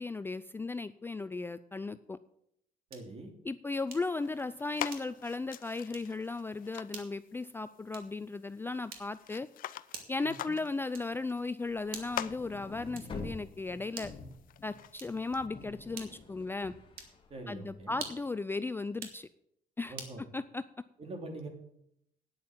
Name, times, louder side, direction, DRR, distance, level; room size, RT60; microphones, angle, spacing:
voice 1, 0.0-2.2 3.4-9.5 10.1-14.1 14.6-16.7 17.5-19.3 19.8-19.9 20.3-20.6, left 3 dB, 15° left, 13 dB, 0.3 m, -36 dB
voice 2, 2.9-3.3 10.2-10.5 17.3-18.0 19.9-20.2 21.0-21.5, right 2 dB, 40° right, 3 dB, 2.9 m, -44 dB
sound 1, 2.9-3.2 3.9-4.2 4.9-5.3 5.9-6.2 6.9-7.2 7.9-8.2 8.9-9.3 9.9-10.3 10.9-11.3 11.9-12.3 12.9-13.3 13.9-14.3 14.9-15.3 15.9-16.3 16.9-17.2 17.9-18.3 18.9-19.2 20.0-20.2, right 6 dB, 85° right, 2.1 m, -47 dB
sound 2, 3.9-15.5, left 12 dB, 70° left, 0.5 m, -46 dB
sound 3, 11.7-18.0, left 3 dB, 35° left, 2.2 m, -48 dB
9.6 x 8.5 x 7.4 m, 0.76 s
cardioid pair, 110°, 15 cm